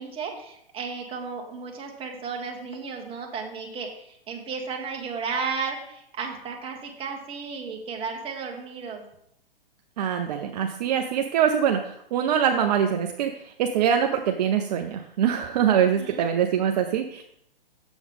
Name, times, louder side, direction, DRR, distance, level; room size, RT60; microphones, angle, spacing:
voice 1, 0.0-9.0 15.7-16.3, right 5 dB, 20° right, 1 dB, 1.2 m, -34 dB
voice 2, 10.0-11.8 12.1-13.3 13.6-17.2, right 8 dB, 45° right, 4 dB, 0.6 m, -23 dB
7.1 x 7.0 x 3.6 m, 0.75 s
hypercardioid pair, 125°, 30 cm